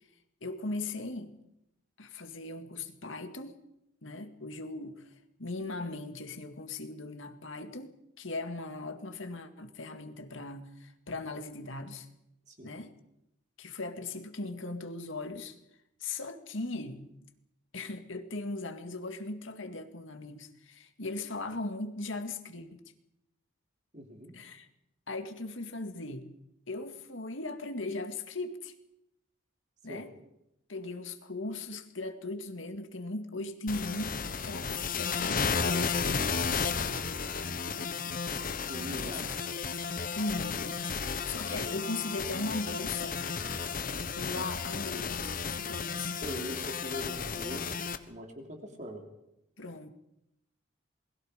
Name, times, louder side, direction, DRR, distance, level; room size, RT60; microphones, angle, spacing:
voice 1, 0.4-1.4 2.0-3.6 4.0-7.9 8.2-12.1 12.6-12.9 13.6-15.6 16.0-17.1 17.7-22.8 24.3-24.7 25.1-26.3 26.7-28.7 29.8-30.1 30.7-38.3 39.0-39.3 40.1-43.3 44.2-46.2 49.6-49.9, left 2 dB, 75° left, 7 dB, 2.1 m, -39 dB
voice 2, 23.9-24.3 29.9-30.1 38.6-39.3 46.2-49.0, equal, 35° right, 3 dB, 3.4 m, -42 dB
sound 1, 33.7-48.0, left 5 dB, 45° left, 1.1 m, -33 dB
28.0 x 21.5 x 5.2 m, 0.84 s
head